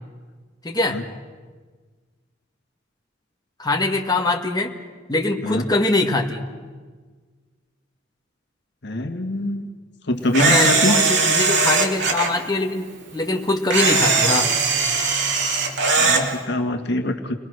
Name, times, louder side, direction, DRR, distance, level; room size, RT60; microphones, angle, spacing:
voice 1, 0.6-1.0 3.6-4.7 5.1-6.4 10.3-14.5, left 2 dB, 20° left, 1 dB, 2.0 m, -23 dB
voice 2, 8.8-9.7 10.1-10.9 15.9-17.4, left 1 dB, 65° left, 5 dB, 1.8 m, -24 dB
Camera, 10.3-12.3 13.7-16.2, right 4 dB, 65° right, 3.2 m, -19 dB
29.5 x 21.0 x 6.5 m, 1.4 s
head